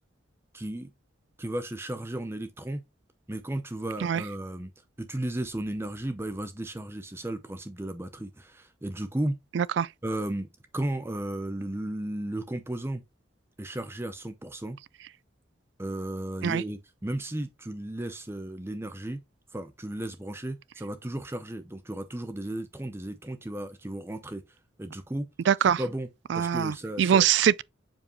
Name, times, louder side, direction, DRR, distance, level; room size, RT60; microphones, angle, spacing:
voice 1, 0.5-0.9 1.4-2.8 3.3-4.7 5.0-9.4 10.0-10.5 10.7-13.0 13.6-14.8 15.8-19.2 19.5-25.3 25.6-26.1 26.3-27.2, right 1 dB, 10° right, 0.6 m, -34 dB
voice 2, 9.5-9.9 16.4-16.6 25.5-25.8 26.3-27.6, right 8 dB, 65° right, 0.3 m, -23 dB
7.3 x 5.1 x 3.0 m
head